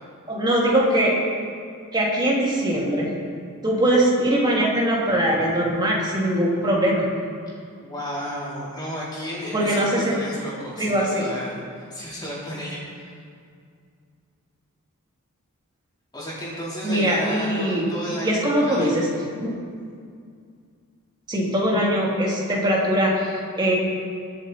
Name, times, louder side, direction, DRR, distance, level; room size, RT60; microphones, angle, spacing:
voice 1, 0.3-1.2 1.9-3.1 3.6-7.0 9.5-10.1 10.8-11.3 16.8-17.9 18.2-19.1 19.4-19.5 21.3-23.8, right 1 dB, 20° right, -4 dB, 2.6 m, -21 dB
voice 2, 7.8-13.1 16.1-19.0, equal, 20° left, -7 dB, 3.9 m, -33 dB
23.0 x 7.7 x 4.3 m, 2.2 s
head